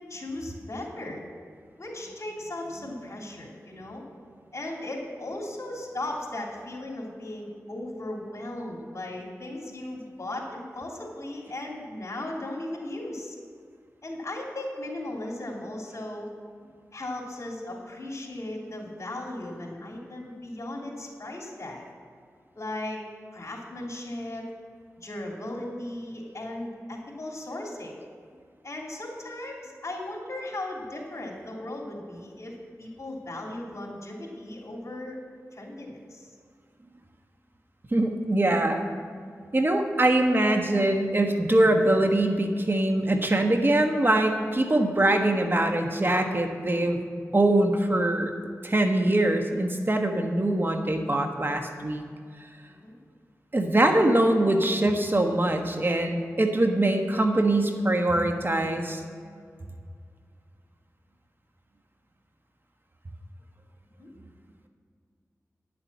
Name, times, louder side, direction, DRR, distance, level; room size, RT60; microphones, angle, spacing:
voice 1, 0.1-1.2 1.8-4.0 4.5-13.4 14.0-16.3 16.9-21.8 22.5-23.0 23.3-24.5 25.0-28.0 28.6-35.2 35.5-36.3 52.6-53.0 64.0-64.1, left 1 dB, 60° left, -1 dB, 3.0 m, -37 dB
voice 2, 37.9-38.8 39.5-47.0 47.3-48.3 48.6-52.0 53.5-59.0, right 1 dB, 40° right, 4 dB, 1.3 m, -23 dB
10.5 x 7.1 x 7.4 m, 2.2 s
cardioid pair, 45°, 6 cm